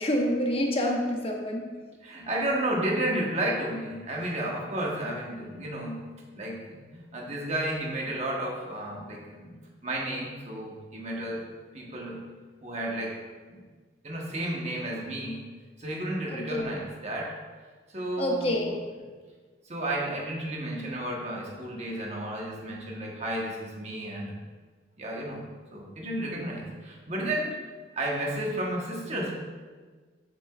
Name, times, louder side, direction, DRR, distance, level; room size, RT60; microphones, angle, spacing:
voice 1, 0.0-1.7 16.3-16.8 18.2-18.8, left 1 dB, 30° left, 0 dB, 0.9 m, -27 dB
voice 2, 2.0-9.6 9.8-11.5 11.7-12.3 12.6-13.6 14.0-15.5 15.8-17.4 17.9-18.6 19.6-24.3 25.0-25.5 25.7-27.6 28.0-29.3, right 1 dB, 35° right, -2 dB, 1.2 m, -32 dB
7.6 x 6.6 x 2.4 m, 1.4 s
head